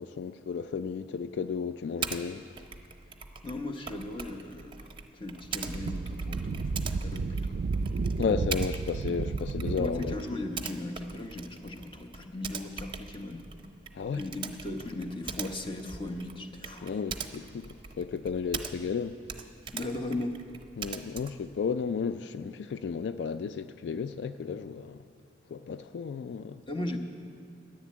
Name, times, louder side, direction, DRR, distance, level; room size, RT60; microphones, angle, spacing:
voice 1, 0.0-2.4 8.2-10.4 13.9-14.2 16.8-19.2 20.8-25.0 25.5-26.6, left 6 dB, 75° left, 0.3 m, -33 dB
Typing, 2.0-2.2 2.6-19.0 19.2-21.5, right 6 dB, 30° right, 0.7 m, -42 dB
voice 2, 3.4-7.6 9.8-13.5 14.2-16.9 19.7-20.4 26.7-27.0, left 2 dB, 30° left, 0.9 m, -37 dB
Wind, 5.4-10.3, right 4 dB, 60° right, 0.3 m, -32 dB
10.5 x 10.5 x 8.5 m
head